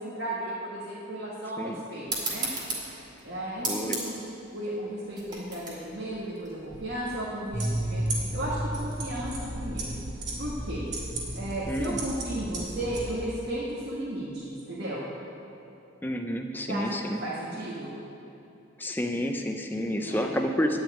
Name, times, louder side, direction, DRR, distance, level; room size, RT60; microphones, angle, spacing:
voice 1, 0.0-2.5 3.2-4.2 4.5-10.0 10.4-10.9 11.3-15.1 16.7-16.9 17.2-18.0 20.0-20.3, right 1 dB, 55° right, -7 dB, 1.7 m, -34 dB
sound 1, 2.1-7.2, right 2 dB, 20° right, 2.1 m, -36 dB
voice 2, 3.7-4.0 11.7-12.0 16.0-17.2 18.8-20.8, equal, 10° left, 4 dB, 0.6 m, -29 dB
sound 2, 7.5-13.0, right 1 dB, 35° right, 2.1 m, -33 dB
9.9 x 6.1 x 8.7 m, 2.8 s
head